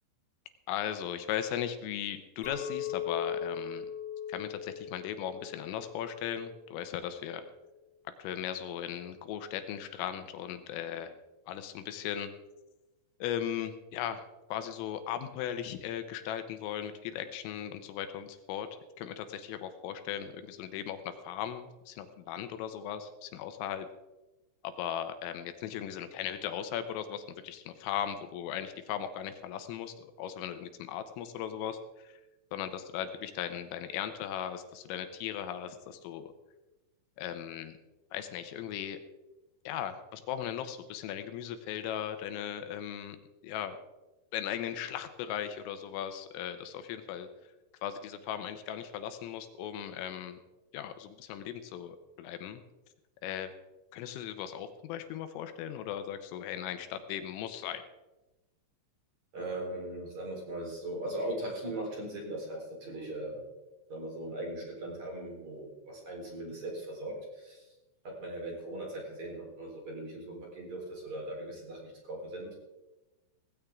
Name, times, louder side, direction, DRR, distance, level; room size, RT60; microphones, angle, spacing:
voice 1, 0.7-3.9 4.3-7.4 8.2-11.1 11.5-12.3 13.2-14.2 14.5-18.7 19.0-23.9 24.6-32.2 32.5-36.3 37.2-37.8 38.1-39.0 39.7-43.2 43.4-43.8 44.3-47.3 47.8-50.4 50.7-52.6 53.2-53.5 53.9-57.8, left 10 dB, 85° left, 9 dB, 3.6 m, -37 dB
Chink clink, 2.4-6.9, left 8 dB, 30° left, 2.6 m, -39 dB
voice 2, 59.3-63.5 63.9-67.7 68.0-72.6, right 1 dB, 35° right, -1 dB, 4.8 m, -39 dB
17.5 x 16.0 x 3.7 m, 1.0 s
omnidirectional pair, 5.9 m